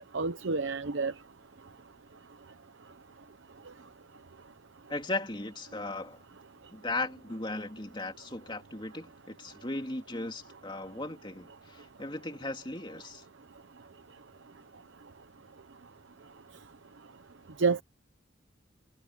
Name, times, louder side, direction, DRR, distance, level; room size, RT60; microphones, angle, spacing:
voice 1, 0.1-1.1 17.6-17.8, right 4 dB, 85° right, 0.9 m, -28 dB
voice 2, 4.9-6.2 6.7-13.2, left 2 dB, 25° left, 2.9 m, -37 dB
head